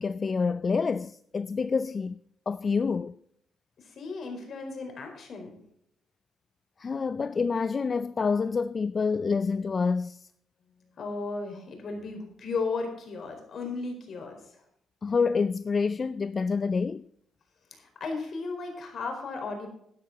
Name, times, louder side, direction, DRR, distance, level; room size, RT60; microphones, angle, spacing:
voice 1, 0.0-2.2 2.5-3.1 6.8-10.3 15.0-17.0, left 5 dB, 40° left, 0.4 m, -27 dB
voice 2, 3.8-5.5 11.0-14.6 17.7-19.7, left 4 dB, 55° left, 4.4 m, -35 dB
11.5 x 10.5 x 4.1 m
cardioid pair, 90°, 0 cm